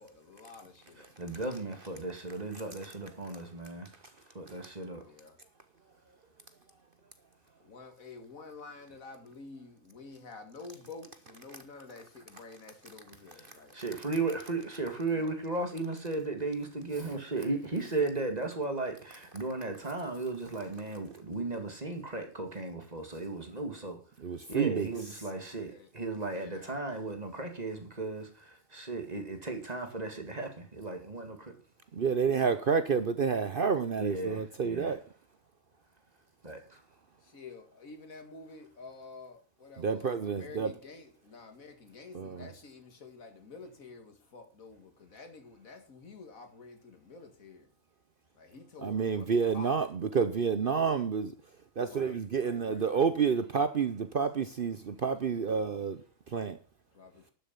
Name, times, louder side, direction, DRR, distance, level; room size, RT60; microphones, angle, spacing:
voice 1, 0.0-1.4 5.0-5.4 7.6-13.8 15.0-15.6 25.5-25.9 26.2-26.8 37.2-47.7 48.4-49.7 51.8-53.1 54.9-55.7 57.0-57.3, left 4 dB, 85° left, 2.4 m, -50 dB
voice 2, 1.2-3.9 4.3-5.0 13.7-24.0 24.5-28.3 28.7-31.5 34.0-34.9 36.4-36.6, right 3 dB, 30° right, 2.3 m, -35 dB
voice 3, 24.2-24.9 31.9-35.0 39.8-40.7 42.1-42.5 48.8-51.3 51.8-56.0 56.3-56.5, right 6 dB, 50° right, 0.8 m, -29 dB
12.0 x 7.1 x 7.0 m
omnidirectional pair, 1.4 m